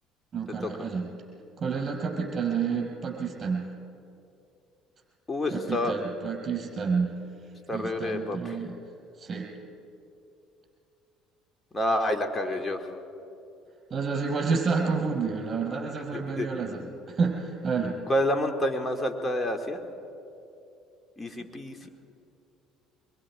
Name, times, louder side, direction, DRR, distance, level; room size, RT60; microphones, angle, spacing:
voice 1, 0.3-1.1 1.6-3.7 5.5-7.2 7.7-8.8 9.2-9.5 13.9-18.0, right 5 dB, 40° right, 0 dB, 5.1 m, -29 dB
voice 2, 5.3-5.9 7.7-8.6 11.7-12.9 16.1-16.5 18.1-19.8 21.2-21.9, left 1 dB, 25° left, 5 dB, 2.3 m, -28 dB
24.0 x 22.5 x 4.9 m, 2.7 s
supercardioid pair, 75°, 0 cm